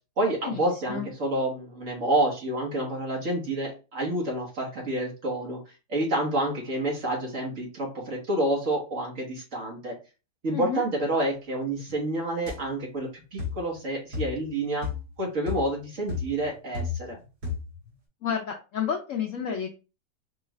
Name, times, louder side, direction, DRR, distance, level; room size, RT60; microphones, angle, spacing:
voice 1, 0.2-5.6 5.9-9.9 10.4-14.9 15.2-17.2, right 1 dB, 50° right, -2 dB, 1.5 m, -28 dB
voice 2, 10.5-10.8 18.2-19.7, left 7 dB, 70° left, 2 dB, 0.7 m, -30 dB
sound 1, 12.5-12.6 13.4-13.7 14.1-14.5 14.8-15.1 15.5-15.8 16.1-17.2 17.4-17.8, left 5 dB, 65° right, 2.2 m, -33 dB
4.7 x 2.4 x 3.1 m, 0.31 s
omnidirectional pair, 1.9 m